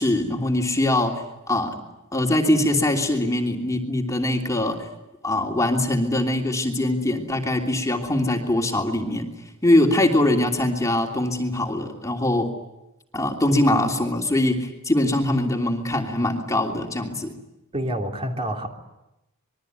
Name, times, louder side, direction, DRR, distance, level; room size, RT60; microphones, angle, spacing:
voice 1, 0.0-1.8 2.1-4.9 5.2-9.3 9.6-12.5 13.1-17.3, left 1 dB, 15° left, 1 dB, 3.0 m, -22 dB
voice 2, 17.7-18.7, right 1 dB, 25° right, 2 dB, 3.3 m, -27 dB
27.0 x 22.5 x 9.5 m, 0.93 s
head